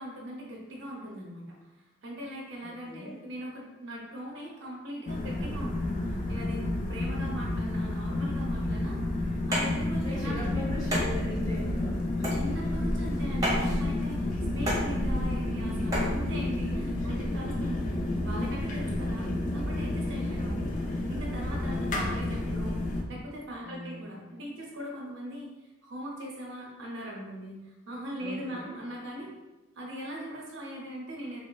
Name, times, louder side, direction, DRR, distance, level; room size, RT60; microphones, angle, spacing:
voice 1, 0.0-1.4 2.0-6.0 6.3-9.0 9.3-10.6 10.9-11.0 12.3-22.8 23.1-29.3 29.8-31.4, equal, 60° right, -2 dB, 0.6 m, -40 dB
voice 2, 2.6-3.2 10.0-12.3 13.5-13.7 17.0-17.5 20.2-20.7 21.7-22.0 23.6-24.0 28.2-28.7, left 1 dB, 20° left, -6 dB, 0.8 m, -41 dB
sound 1, 5.1-23.0, left 1 dB, 40° left, 0.3 m, -30 dB
sound 2, 9.4-16.2, equal, 20° right, 0.9 m, -33 dB
3.7 x 2.0 x 2.2 m, 1.1 s
head